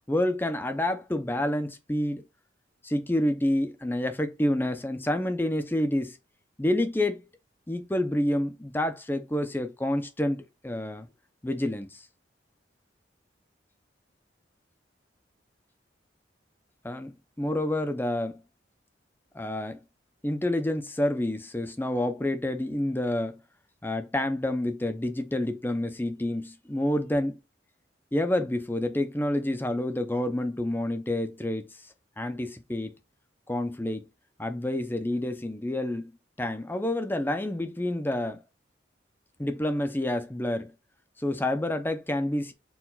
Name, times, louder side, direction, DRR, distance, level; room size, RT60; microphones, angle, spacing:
voice 1, 0.0-2.2 2.8-6.2 6.6-7.2 7.7-11.1 11.4-12.0 16.8-18.4 19.3-19.8 20.2-23.4 23.8-27.4 28.1-31.8 32.2-32.9 33.5-34.0 34.4-38.4 39.4-40.7 41.2-42.5, left 1 dB, 10° left, 0.6 m, -28 dB
4.7 x 2.4 x 3.8 m
head